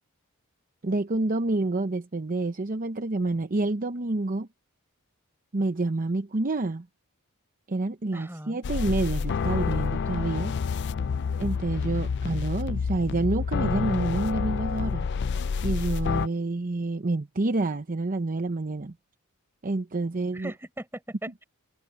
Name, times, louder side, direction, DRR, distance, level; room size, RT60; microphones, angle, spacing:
voice 1, 0.8-4.5 5.5-6.9 7.7-10.5 11.4-15.1 15.6-18.9 19.6-20.5, right 2 dB, 40° right, 0.8 m, -28 dB
voice 2, 8.1-8.6 20.3-21.4, right 1 dB, 10° right, 4.4 m, -39 dB
sound 1, 8.6-16.3, left 5 dB, 50° left, 0.4 m, -28 dB
head